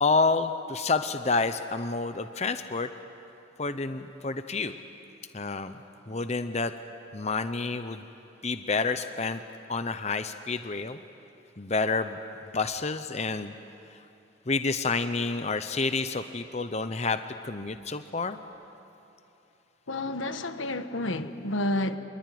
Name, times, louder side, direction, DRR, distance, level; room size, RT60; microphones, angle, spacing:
voice 1, 0.0-2.9 3.6-4.7 5.3-5.8 6.1-6.7 7.1-8.1 8.4-9.4 9.7-11.0 11.6-12.2 12.5-13.5 14.5-18.4, left 4 dB, 35° left, 10 dB, 0.8 m, -29 dB
voice 2, 19.9-22.0, left 1 dB, 85° left, 9 dB, 1.4 m, -30 dB
28.0 x 22.0 x 9.4 m, 2.9 s
head